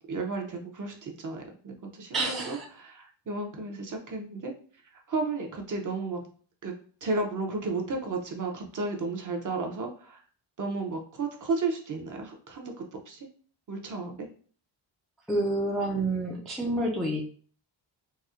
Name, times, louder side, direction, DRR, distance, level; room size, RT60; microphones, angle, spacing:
voice 1, 0.1-4.5 4.9-6.3 6.6-6.7 7.0-10.2 10.6-13.3 13.7-14.3, right 3 dB, 40° right, 2 dB, 0.7 m, -33 dB
voice 2, 2.1-2.7 15.3-17.3, right 1 dB, ahead, -2 dB, 0.3 m, -28 dB
4.1 x 2.1 x 2.4 m, 0.43 s
wide cardioid pair, 130°, 50 cm